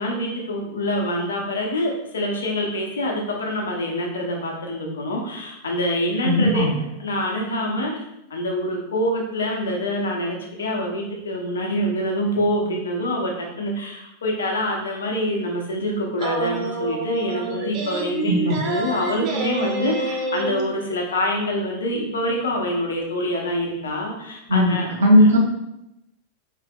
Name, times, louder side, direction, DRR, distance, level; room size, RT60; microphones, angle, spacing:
voice 1, 0.0-7.9 8.3-24.9 25.2-25.3, equal, 65° left, 0 dB, 0.9 m, -26 dB
voice 2, 6.2-6.7 18.3-18.6 24.5-24.7 25.0-25.4, equal, 65° right, -2 dB, 1.1 m, -16 dB
sound 1, 16.2-20.6, right 2 dB, 40° right, 0.6 m, -27 dB
5.0 x 3.3 x 2.3 m, 0.85 s
figure-of-eight pair, 90°, 0 cm